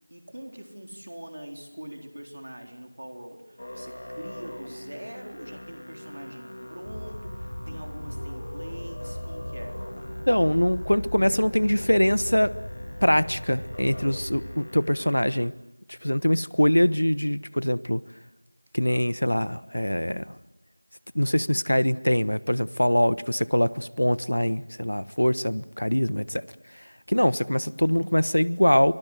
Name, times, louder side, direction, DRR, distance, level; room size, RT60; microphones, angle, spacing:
voice 1, 0.1-9.8, right 1 dB, 40° right, 3 dB, 3.9 m, -43 dB
Musical instrument, 3.6-15.5, left 1 dB, 30° left, 2.4 m, -42 dB
sound 1, 6.8-14.5, equal, 45° left, 4.5 m, -38 dB
voice 2, 10.3-12.5 13.0-15.5 15.9-18.0 18.7-20.3 21.1-26.4 26.7-28.9, equal, 80° left, 17 dB, 1.2 m, -23 dB
29.5 x 24.5 x 7.9 m, 0.91 s
figure-of-eight pair, 180°, 0 cm